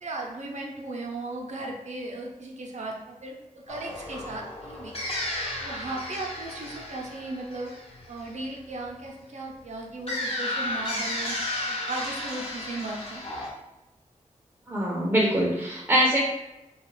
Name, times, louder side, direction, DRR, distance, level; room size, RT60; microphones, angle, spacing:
voice 1, 0.0-4.9 5.6-7.7 8.1-11.4 11.7-13.2, right 2 dB, 65° right, 0 dB, 0.6 m, -36 dB
sound 1, 3.7-8.5 10.1-13.5, left 1 dB, 50° left, 0.7 m, -33 dB
voice 2, 14.7-16.3, equal, 15° right, -4 dB, 0.5 m, -23 dB
2.9 x 2.3 x 3.1 m, 0.93 s
wide cardioid pair, 100°, 13 cm